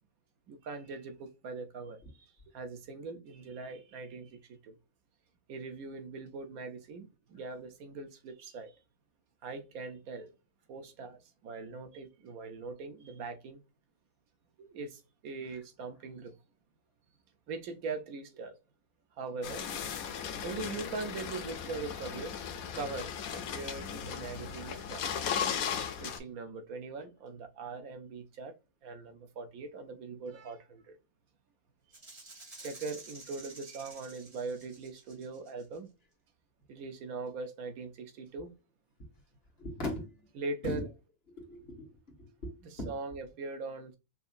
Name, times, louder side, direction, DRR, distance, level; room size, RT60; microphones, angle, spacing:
voice 1, 0.5-4.8 5.5-8.7 9.4-10.3 10.7-13.6 14.6-16.3 17.5-18.5 19.2-19.7 20.4-22.4 22.7-25.0 26.0-28.5 28.8-31.0 32.6-35.9 36.7-38.5 40.4-40.8 42.6-44.0, right 3 dB, 85° right, 1.3 m, -41 dB
sound 1, 19.4-26.2, left 7 dB, 80° left, 1.2 m, -37 dB
Rattle (instrument), 31.9-35.8, right 3 dB, 25° right, 1.5 m, -51 dB
voice 2, 39.6-40.3 40.6-40.9 41.3-41.9 42.2-42.9, left 1 dB, 45° left, 1.7 m, -39 dB
5.4 x 2.7 x 2.5 m
omnidirectional pair, 1.5 m